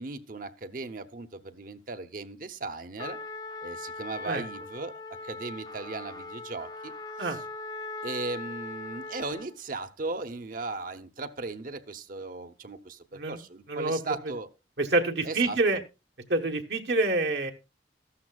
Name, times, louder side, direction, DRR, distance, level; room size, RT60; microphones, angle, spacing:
voice 1, 0.0-3.2 3.6-6.9 7.2-7.4 8.0-14.5 15.2-15.6, right 3 dB, 50° right, 8 dB, 0.8 m, -37 dB
Trumpet, 3.0-9.6, left 3 dB, 20° left, 0.7 m, -40 dB
voice 2, 13.7-14.0 14.8-15.8 16.3-17.5, right 2 dB, 70° right, 3 dB, 1.2 m, -26 dB
14.0 x 12.5 x 2.3 m, 0.27 s
head